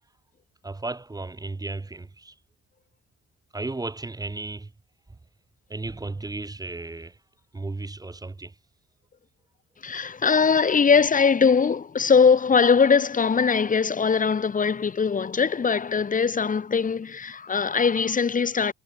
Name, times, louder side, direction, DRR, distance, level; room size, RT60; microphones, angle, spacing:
voice 1, 0.6-2.3 3.5-4.7 5.7-7.2 7.5-8.5, right 2 dB, 10° right, 0.7 m, -34 dB
voice 2, 9.8-18.7, left 5 dB, 25° left, 0.8 m, -21 dB
cardioid pair, 90°, 30 cm